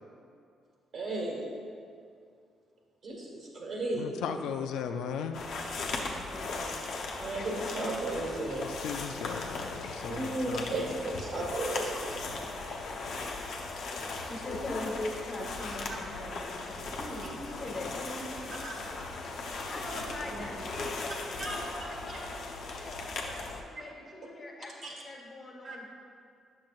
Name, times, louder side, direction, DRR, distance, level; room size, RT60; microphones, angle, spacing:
voice 1, 0.9-1.5 3.0-4.1 7.2-8.7 10.1-12.3 15.9-16.0 18.5-18.8 20.2-20.5 21.4-21.6 22.1-22.2 23.8-23.9 24.8-25.0 25.6-25.8, right 2 dB, 55° right, -2 dB, 1.6 m, -35 dB
voice 2, 4.0-5.4 8.5-10.9, left 7 dB, 85° left, 6 dB, 0.4 m, -37 dB
sound 1, 5.3-23.6, left 3 dB, 70° left, 0.8 m, -38 dB
voice 3, 6.1-6.9 14.2-18.4 19.7-25.9, left 1 dB, 35° left, -1 dB, 1.3 m, -41 dB
8.9 x 6.4 x 2.4 m, 2.3 s
cardioid pair, 90°, 0 cm